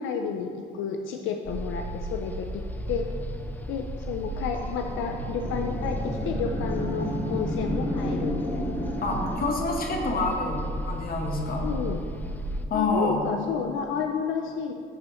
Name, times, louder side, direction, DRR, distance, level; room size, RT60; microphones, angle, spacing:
voice 1, 0.0-3.1 3.7-8.6 9.9-10.0 11.6-12.0 12.7-14.7, left 6 dB, 85° left, 4 dB, 0.4 m, -31 dB
sound 1, 1.5-12.7, right 1 dB, 10° left, 0.4 m, -34 dB
sound 2, 4.5-9.3, equal, 25° left, 1.6 m, -31 dB
voice 2, 9.0-11.6 12.7-13.2, left 3 dB, 50° left, 1 dB, 1.2 m, -27 dB
11.0 x 4.2 x 3.0 m, 2.4 s
cardioid pair, 90°, 20 cm